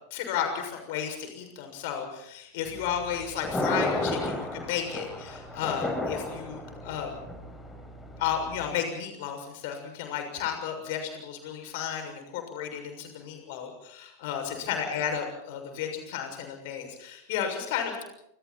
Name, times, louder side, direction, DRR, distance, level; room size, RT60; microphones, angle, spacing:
voice 1, 0.1-7.2 8.2-18.0, left 8 dB, 50° left, 6 dB, 6.8 m, -33 dB
Thunder, 2.7-8.7, left 2 dB, 10° left, 6.2 m, -33 dB
28.5 x 27.0 x 4.4 m, 0.76 s
figure-of-eight pair, 90°, 0 cm